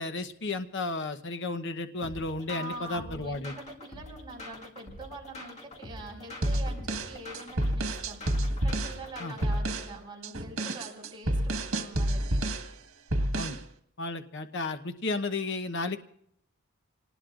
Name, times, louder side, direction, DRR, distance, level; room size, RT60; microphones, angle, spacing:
voice 1, 0.0-3.5 9.2-9.3 13.3-13.6 14.0-16.0, left 3 dB, 60° left, 8 dB, 1.0 m, -33 dB
sound 1, 2.0-9.6, left 1 dB, 35° left, 1.9 m, -45 dB
voice 2, 2.5-12.4, right 2 dB, 25° right, 0 dB, 5.0 m, -44 dB
sound 2, 6.4-9.0 9.4-9.9 10.2-12.7 13.1-13.6, right 1 dB, 85° right, 1.6 m, -29 dB
28.0 x 19.5 x 2.5 m, 0.69 s
head